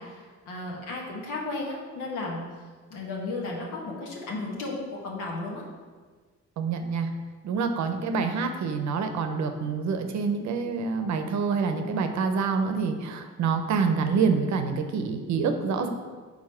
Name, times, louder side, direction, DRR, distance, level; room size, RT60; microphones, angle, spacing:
voice 1, 0.0-2.4 2.9-5.6, left 2 dB, 90° left, -2 dB, 1.4 m, -34 dB
voice 2, 6.6-7.1 7.4-15.9, right 5 dB, 70° right, 7 dB, 0.7 m, -27 dB
4.9 x 4.0 x 5.6 m, 1.5 s
cardioid pair, 90°, 30 cm